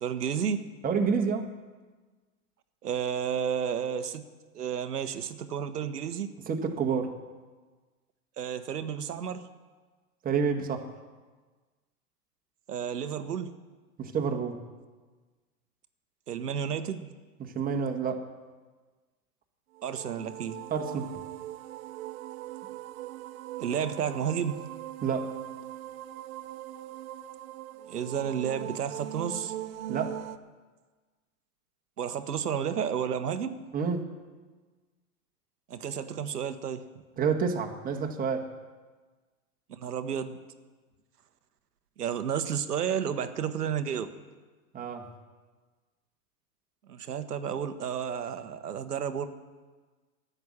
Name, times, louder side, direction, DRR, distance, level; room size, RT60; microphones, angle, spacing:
voice 1, 0.0-0.6 2.8-4.3 4.5-6.3 8.4-9.5 12.7-13.5 16.3-17.1 19.8-20.7 23.6-24.6 27.9-29.5 32.0-33.6 35.7-36.9 39.7-40.4 42.0-44.1 46.9-49.3, right 8 dB, 90° right, 10 dB, 1.1 m, -31 dB
voice 2, 0.8-1.5 6.5-7.1 10.2-10.8 14.0-14.6 17.4-18.2 20.7-21.1 25.0-25.3 29.9-30.2 33.7-34.0 37.2-38.5 44.7-45.1, right 6 dB, 20° right, 3 dB, 1.5 m, -28 dB
sound 1, 19.7-30.4, right 13 dB, 60° right, 0.8 m, -41 dB
11.0 x 8.1 x 9.8 m, 1.3 s
hypercardioid pair, 115°, 45 cm